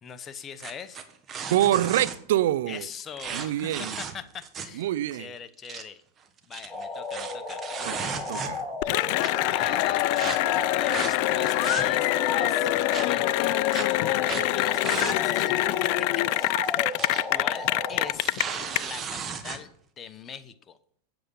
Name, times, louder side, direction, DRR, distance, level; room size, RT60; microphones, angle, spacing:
voice 1, 0.0-1.0 2.7-4.9 5.1-6.0 6.5-7.6 9.5-10.3 10.7-13.6 14.5-16.8 17.3-18.4 18.8-20.8, left 7 dB, 30° left, 0.9 m, -42 dB
sound 1, 0.6-2.2 3.2-4.8 5.1-5.2 5.5-5.8 6.4-8.8 9.2-9.3 10.1-10.4 10.9-11.1 11.5-12.2 12.9-13.0 13.7-13.8 14.2-14.5 14.8-15.2 15.5-15.6 16.7-17.2 17.5-17.7 18.1-19.6, right 6 dB, 30° right, 1.3 m, -35 dB
voice 2, 1.5-2.9 3.3-4.0 4.8-5.3 7.9-8.7, right 13 dB, 70° right, 0.4 m, -26 dB
sound 2, 6.7-18.1, left 2 dB, 10° left, 1.7 m, -35 dB
Cheering / Applause, 8.8-18.8, left 19 dB, 55° left, 0.3 m, -25 dB
8.2 x 7.8 x 5.4 m
hypercardioid pair, 110°, 0 cm